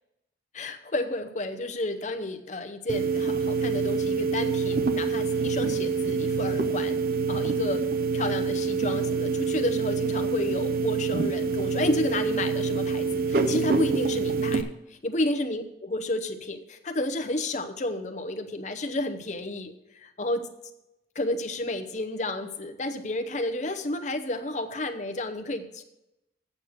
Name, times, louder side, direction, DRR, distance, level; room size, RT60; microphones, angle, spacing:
voice 1, 0.5-7.0 7.3-7.8 8.1-14.7 15.0-20.5 21.1-25.8, left 1 dB, 40° left, 7 dB, 0.8 m, -31 dB
sound 1, 2.9-14.6, right 4 dB, 55° right, 0.6 m, -26 dB
8.4 x 6.4 x 6.5 m, 0.89 s
head